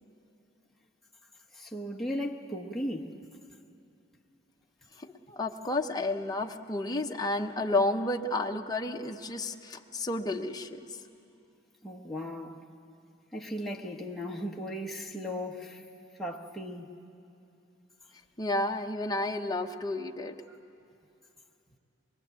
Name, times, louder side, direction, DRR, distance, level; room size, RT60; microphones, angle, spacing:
voice 1, 1.5-3.1 11.8-12.6 13.3-15.8 16.2-16.9, equal, ahead, 1.1 m, -36 dB
voice 2, 5.0-11.0 18.4-20.4, left 2 dB, 20° left, 0.9 m, -31 dB
24.0 x 22.5 x 8.3 m
head